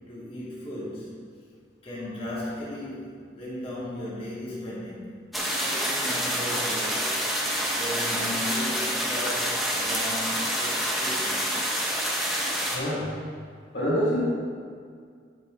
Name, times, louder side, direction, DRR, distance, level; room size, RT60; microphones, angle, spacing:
voice 1, 0.1-1.2 1.8-11.5, left 1 dB, 35° left, -9 dB, 2.8 m, -36 dB
sound 1, 5.3-12.8, equal, ahead, 1.7 m, -27 dB
voice 2, 12.7-13.1 13.7-14.3, equal, 70° left, -8 dB, 2.4 m, -26 dB
12.0 x 8.4 x 4.0 m, 2.1 s
head